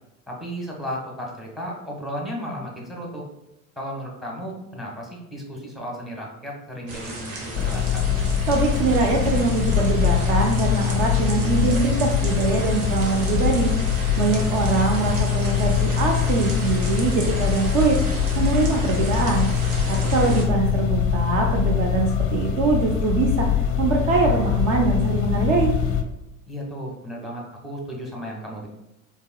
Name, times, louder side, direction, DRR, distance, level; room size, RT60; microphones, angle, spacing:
voice 1, 0.3-3.2 3.8-8.1 19.9-20.4 26.5-28.7, equal, ahead, -2 dB, 1.0 m, -34 dB
sound 1, 6.9-20.4, right 2 dB, 70° right, 1.1 m, -34 dB
sound 2, 7.5-26.0, left 8 dB, 30° left, 0.5 m, -23 dB
voice 2, 8.5-13.7 14.2-19.5 19.9-23.5 23.8-25.7, right 4 dB, 40° right, 1 dB, 0.5 m, -23 dB
4.5 x 2.8 x 2.2 m, 0.91 s
figure-of-eight pair, 80°, 43 cm